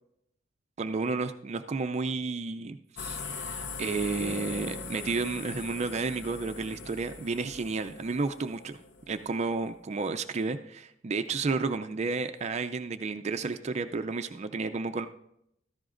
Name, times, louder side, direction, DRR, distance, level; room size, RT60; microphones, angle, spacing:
voice 1, 0.8-8.8 9.1-15.1, right 4 dB, 35° right, 9 dB, 0.4 m, -32 dB
sound 1, 3.0-9.8, left 5 dB, 60° left, 0.6 m, -41 dB
sound 2, 4.2-7.7, right 2 dB, 25° left, 1.6 m, -47 dB
15.5 x 13.5 x 2.5 m, 0.77 s
head